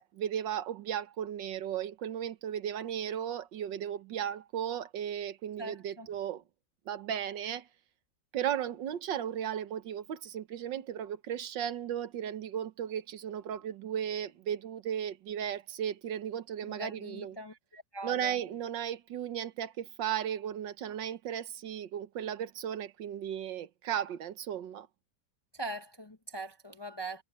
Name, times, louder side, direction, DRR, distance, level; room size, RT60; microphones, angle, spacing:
voice 1, 0.0-6.4 6.9-7.7 8.3-17.3 18.0-24.9, right 9 dB, 85° right, 1.7 m, -35 dB
voice 2, 5.6-6.1 16.6-18.4 25.5-27.2, right 1 dB, 20° left, 0.7 m, -42 dB
omnidirectional pair, 1.9 m